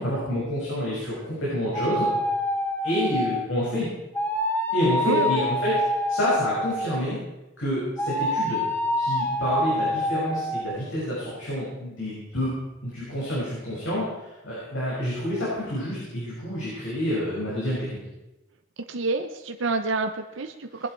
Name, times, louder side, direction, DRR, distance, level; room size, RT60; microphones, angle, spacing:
voice 1, 0.0-2.1 2.8-3.9 4.7-7.2 7.6-8.6 9.0-12.5 12.8-18.0 20.8-20.9, equal, 75° left, -7 dB, 6.4 m, -28 dB
sound 1, 1.7-3.5 4.1-7.0 8.0-10.6, left 1 dB, 10° left, 1.5 m, -26 dB
voice 2, 5.0-5.5 18.9-20.9, right 3 dB, 70° right, 6 dB, 0.9 m, -28 dB
21.0 x 11.0 x 4.6 m, 1.0 s
head